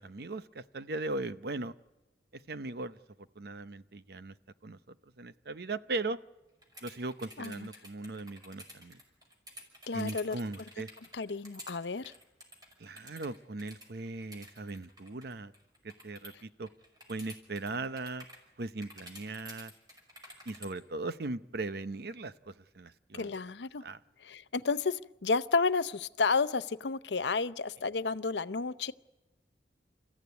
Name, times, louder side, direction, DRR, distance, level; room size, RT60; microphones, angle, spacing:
voice 1, 0.0-1.7 2.3-4.3 4.6-6.2 6.8-9.0 9.9-10.9 12.8-15.5 15.8-16.7 17.1-18.3 18.6-19.7 20.5-23.4 23.8-24.0, right 2 dB, 60° right, 13 dB, 0.8 m, -39 dB
sound 1, 6.6-16.4 16.7-18.4 18.8-20.7, equal, 25° right, 5.6 m, -50 dB
voice 2, 9.9-10.4 11.1-12.0 23.1-23.8 24.2-28.9, left 4 dB, 80° left, 13 dB, 0.7 m, -31 dB
30.0 x 14.5 x 9.5 m, 1.1 s
head